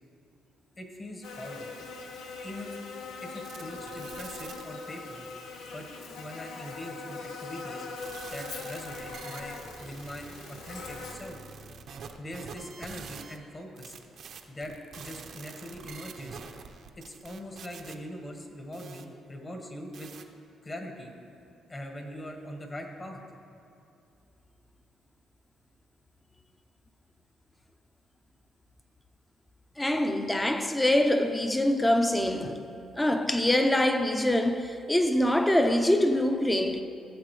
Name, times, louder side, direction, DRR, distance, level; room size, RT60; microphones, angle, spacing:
voice 1, 0.8-1.7 2.4-2.8 3.2-5.3 5.7-5.9 6.2-7.9 8.3-11.4 12.2-14.0 14.5-16.4 17.0-20.1 20.6-21.1 21.7-23.2, left 1 dB, 30° left, 1.6 m, -42 dB
Buzz, 1.2-11.2, left 4 dB, 85° left, 0.9 m, -41 dB
sound 1, 3.4-5.0 8.0-13.4 13.8-19.0 19.9-20.2, right 6 dB, 65° right, 0.7 m, -46 dB
voice 2, 29.8-32.7 33.0-36.8, left 1 dB, 10° left, 0.7 m, -24 dB
16.5 x 7.4 x 3.3 m
cardioid pair, 90°, 0 cm